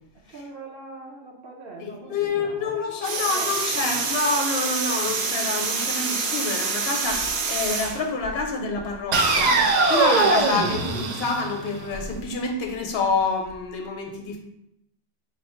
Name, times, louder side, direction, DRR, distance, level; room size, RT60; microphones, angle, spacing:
voice 1, 0.3-4.0 4.8-5.0, right 3 dB, 55° right, -1 dB, 0.7 m, -42 dB
voice 2, 1.8-14.4, left 4 dB, 60° left, 2 dB, 0.9 m, -27 dB
sound 1, 3.0-8.0 9.1-12.0, right 4 dB, 75° right, 0.3 m, -24 dB
4.3 x 2.0 x 4.2 m, 0.79 s
omnidirectional pair, 1.3 m